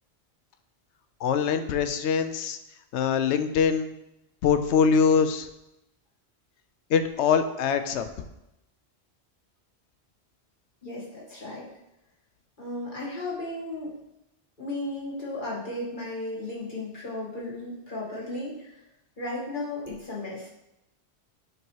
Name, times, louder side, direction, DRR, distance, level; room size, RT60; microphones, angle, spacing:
voice 1, 1.2-2.6 2.9-3.9 4.4-5.5 6.9-8.1, left 6 dB, 85° left, 9 dB, 0.9 m, -23 dB
voice 2, 10.8-11.7 12.6-13.9 14.6-18.7 19.2-20.5, left 2 dB, 45° left, -6 dB, 1.8 m, -35 dB
8.0 x 3.0 x 4.6 m, 0.88 s
omnidirectional pair, 1.1 m